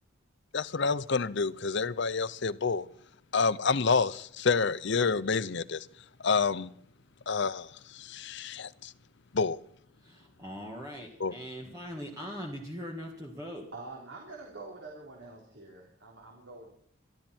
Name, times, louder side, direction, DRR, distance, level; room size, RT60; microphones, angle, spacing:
voice 1, 0.5-2.9 3.3-5.9 6.2-6.7 7.3-8.9 9.3-9.6 11.2-11.4, left 5 dB, 55° left, 0.7 m, -28 dB
voice 2, 10.0-13.6, equal, 15° right, 1.9 m, -41 dB
voice 3, 13.7-16.7, right 3 dB, 60° right, 3.7 m, -46 dB
25.5 x 12.5 x 4.5 m
head